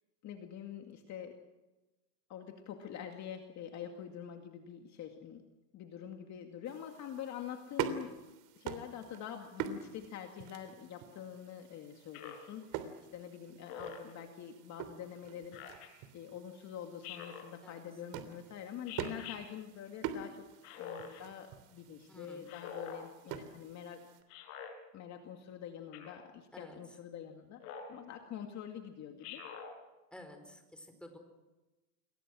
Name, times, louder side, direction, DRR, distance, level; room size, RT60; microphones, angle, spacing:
voice 1, 0.2-1.4 2.3-5.4 5.7-8.2 8.6-20.5 20.8-24.1 24.9-27.6 27.9-29.4, left 9 dB, 35° left, 4 dB, 2.3 m, -46 dB
sound 1, 6.7-24.2, right 9 dB, 50° right, 3.3 m, -45 dB
Speech synthesizer, 12.1-12.5 13.7-14.1 15.5-15.9 17.0-17.5 18.9-19.4 20.6-21.2 22.5-23.0 24.3-24.7 25.9-26.3 27.6-28.0 29.2-29.7, left 7 dB, 60° left, 6.8 m, -45 dB
voice 2, 22.1-22.4 26.5-26.8 30.1-31.2, left 1 dB, ahead, 5 dB, 4.6 m, -52 dB
29.5 x 22.5 x 6.3 m, 1.1 s
supercardioid pair, 145°, 48 cm